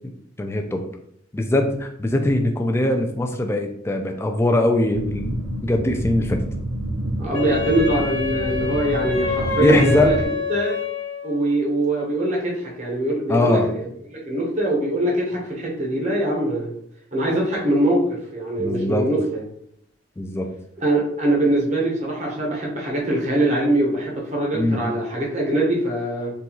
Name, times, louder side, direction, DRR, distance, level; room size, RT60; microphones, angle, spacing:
voice 1, 0.4-0.8 1.3-6.4 9.6-10.1 13.3-13.7 18.6-19.1 20.2-20.5 24.5-24.8, left 1 dB, 15° left, 4 dB, 0.3 m, -21 dB
sound 1, 4.9-10.3, right 1 dB, 70° right, 0.6 m, -29 dB
voice 2, 7.2-10.1 10.5-10.8 11.2-16.7 17.1-19.4 20.8-26.3, right 1 dB, 35° right, -3 dB, 0.7 m, -23 dB
Wind instrument woodwind instrument, 7.3-11.4, left 5 dB, 90° left, 1.1 m, -27 dB
3.9 x 2.3 x 2.9 m, 0.70 s
head